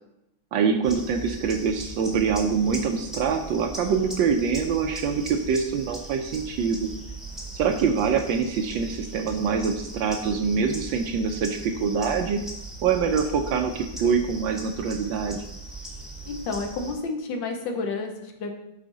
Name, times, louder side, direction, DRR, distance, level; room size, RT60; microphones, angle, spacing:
voice 1, 0.5-6.9 7.5-12.4 12.8-15.4, right 6 dB, 75° right, 6 dB, 1.2 m, -25 dB
sound 1, 0.8-16.9, right 2 dB, ahead, 0.8 m, -39 dB
voice 2, 16.2-18.5, left 3 dB, 65° left, 4 dB, 1.4 m, -31 dB
8.2 x 4.2 x 3.9 m, 0.87 s
omnidirectional pair, 2.3 m